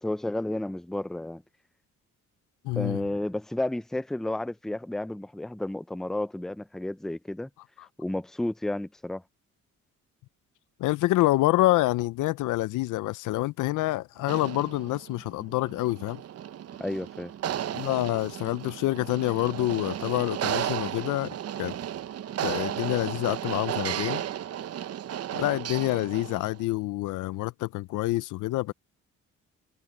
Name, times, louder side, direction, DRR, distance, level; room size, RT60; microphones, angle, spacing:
voice 1, 0.0-1.4 2.8-7.5 8.0-9.2 16.8-17.3, left 1 dB, ahead, 0.5 m, -32 dB
voice 2, 2.6-3.0 10.8-16.2 17.7-21.8 22.4-24.2 25.3-28.7, left 18 dB, 85° left, 0.6 m, -27 dB
sound 1, 14.2-26.6, right 10 dB, 55° right, 0.8 m, -34 dB
cardioid pair, 90°, 30 cm